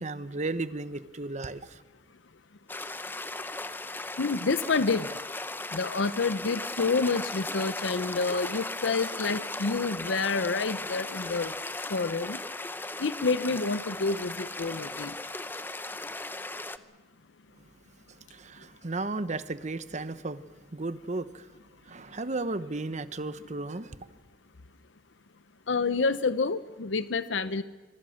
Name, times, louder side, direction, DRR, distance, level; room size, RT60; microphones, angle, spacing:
voice 1, 0.0-1.8 18.3-20.4 20.7-21.5 21.9-24.0, right 2 dB, 40° right, 1.0 m, -34 dB
sound 1, 2.7-16.8, left 2 dB, 10° left, 0.8 m, -37 dB
voice 2, 4.2-5.2 5.7-11.6 11.9-12.4 13.0-15.2 18.6-18.7 25.7-27.6, left 4 dB, 80° left, 0.8 m, -28 dB
25.5 x 24.0 x 6.5 m
head